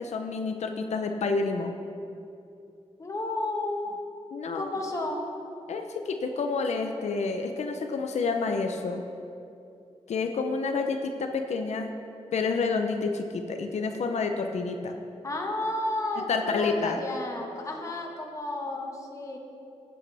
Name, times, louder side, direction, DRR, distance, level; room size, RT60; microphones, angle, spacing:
voice 1, 0.0-1.8 4.3-4.7 5.7-9.0 10.1-11.9 12.3-14.9 16.3-17.0, left 4 dB, 80° left, 5 dB, 0.7 m, -29 dB
voice 2, 3.0-4.0 4.5-5.3 15.2-19.4, left 2 dB, 30° left, 1 dB, 1.3 m, -32 dB
15.0 x 8.5 x 3.5 m, 2.6 s
wide cardioid pair, 120°, 11 cm